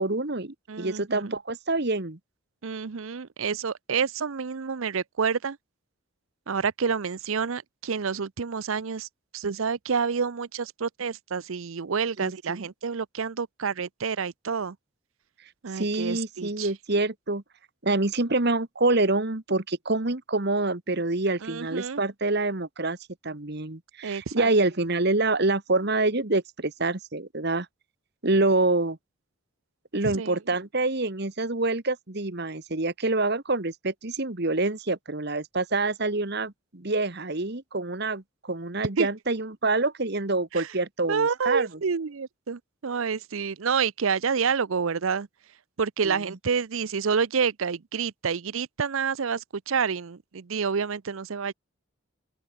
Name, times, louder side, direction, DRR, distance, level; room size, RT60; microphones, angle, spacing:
voice 1, 0.0-2.2 12.2-12.7 15.7-17.4 17.8-23.0 23.2-27.7 28.2-29.0 29.9-41.7 46.0-46.2, right 2 dB, 50° right, 1.5 m, -26 dB
voice 2, 0.7-1.3 2.6-5.6 6.5-9.1 9.3-14.8 15.6-16.7 21.4-22.0 24.0-24.5 30.0-30.4 39.0-39.1 40.5-40.7 41.1-45.3 45.8-51.5, right 6 dB, 70° right, 0.6 m, -28 dB
open air
head